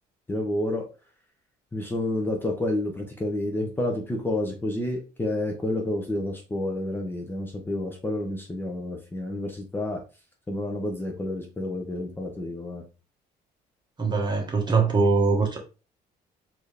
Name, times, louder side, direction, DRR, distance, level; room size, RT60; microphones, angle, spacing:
voice 1, 0.3-0.9 1.7-10.0 10.5-12.8, left 1 dB, 10° left, 0.8 m, -29 dB
voice 2, 14.0-15.6, right 4 dB, 25° right, 1.4 m, -22 dB
4.5 x 2.9 x 3.3 m
cardioid pair, 110°, 17 cm